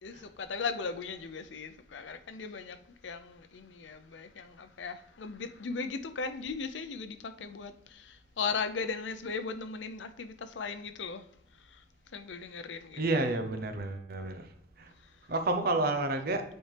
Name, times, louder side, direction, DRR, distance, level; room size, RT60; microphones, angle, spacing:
voice 1, 0.0-2.8 3.0-11.2 11.7-11.8 12.1-13.0, left 4 dB, 85° left, 0.6 m, -37 dB
voice 2, 13.0-14.5 14.8-14.9 15.3-16.4, right 2 dB, 55° right, 0.8 m, -30 dB
8.7 x 4.3 x 3.3 m
head